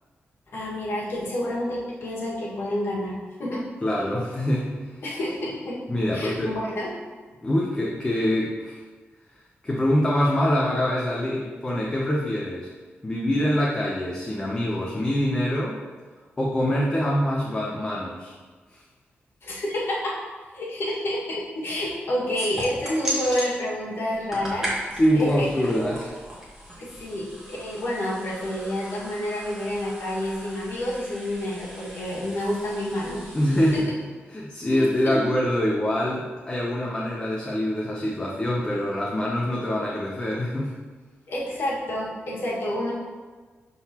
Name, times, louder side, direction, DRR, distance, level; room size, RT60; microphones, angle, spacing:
voice 1, 0.5-3.6 5.0-5.8 6.1-6.9 19.4-20.2 20.5-24.7 25.2-25.5 26.8-33.2 33.7-33.8 34.7-34.9 35.1-35.3 41.3-42.9, left 1 dB, 65° left, -5 dB, 1.8 m, -29 dB
voice 2, 3.8-4.9 5.9-6.6 7.4-8.8 9.6-12.7 13.0-15.8 16.4-18.3 18.7-18.8 24.9-26.1 33.3-33.8 34.3-40.8, equal, 20° left, -4 dB, 0.7 m, -24 dB
sound 1, 22.3-23.5 24.1-33.8, equal, 10° right, 1.7 m, -37 dB
11.5 x 3.9 x 2.9 m, 1.4 s
wide cardioid pair, 160°, 4 cm